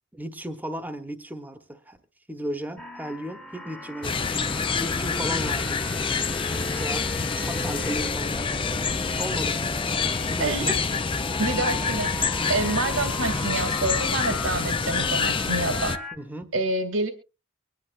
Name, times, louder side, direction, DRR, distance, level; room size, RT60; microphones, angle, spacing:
voice 1, 0.1-2.0 2.3-4.1 4.8-5.8 6.7-7.1 7.4-8.6 9.2-9.6 10.3-10.8 16.2-16.5, right 1 dB, 10° right, 9 dB, 1.1 m, -35 dB
sound 1, 2.8-16.2, left 1 dB, 5° left, 1.3 m, -38 dB
sound 2, 4.0-16.0, left 5 dB, 25° left, 0.5 m, -27 dB
voice 2, 10.4-10.8 11.4-16.0 16.5-17.1, right 2 dB, 85° right, 8 dB, 2.3 m, -27 dB
24.5 x 10.0 x 2.5 m, 0.29 s
head